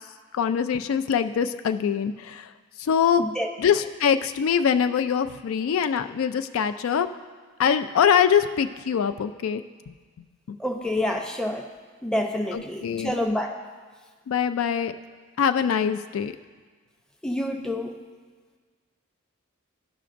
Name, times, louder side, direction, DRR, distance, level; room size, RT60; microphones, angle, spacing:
voice 1, 0.3-2.5 2.8-3.2 3.6-7.1 7.6-9.9 10.5-10.6 12.5-13.2 14.3-14.9 15.4-16.3, left 7 dB, 70° left, 9 dB, 0.3 m, -23 dB
voice 2, 3.2-3.5 10.6-11.7 12.0-13.6 17.2-18.0, left 1 dB, 5° left, 3 dB, 0.6 m, -28 dB
14.5 x 5.9 x 2.5 m, 1.5 s
head